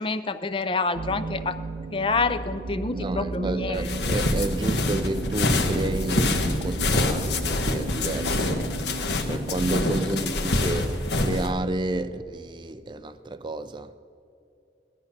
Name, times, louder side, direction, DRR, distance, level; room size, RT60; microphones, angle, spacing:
voice 1, 0.0-1.6 1.9-3.9, left 4 dB, 30° left, 0.5 m, -27 dB
sound 1, 0.9-10.1, right 2 dB, 65° right, 0.7 m, -34 dB
voice 2, 2.9-8.6 9.2-13.9, right 2 dB, 25° right, 0.4 m, -30 dB
sound 2, 3.7-11.5, left 2 dB, 75° left, 1.3 m, -26 dB
18.5 x 12.0 x 5.8 m
head